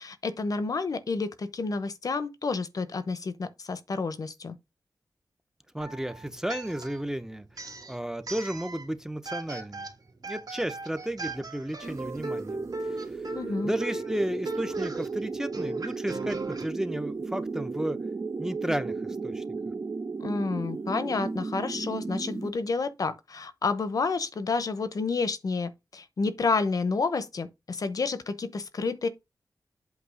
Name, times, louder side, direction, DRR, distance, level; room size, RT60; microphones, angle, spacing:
voice 1, 0.0-4.6 13.3-13.7 20.2-29.1, left 4 dB, 60° left, 1.0 m, -30 dB
voice 2, 5.7-9.9 10.2-12.6 12.8-13.2 13.6-18.0 18.4-19.4, right 1 dB, 5° right, 0.7 m, -33 dB
sound 1, 5.8-7.1 7.5-8.9 9.3-16.7, right 2 dB, 65° right, 2.3 m, -38 dB
sound 2, 11.8-22.5, right 4 dB, 40° right, 0.7 m, -35 dB
8.2 x 3.0 x 6.3 m
wide cardioid pair, 135°, 7 cm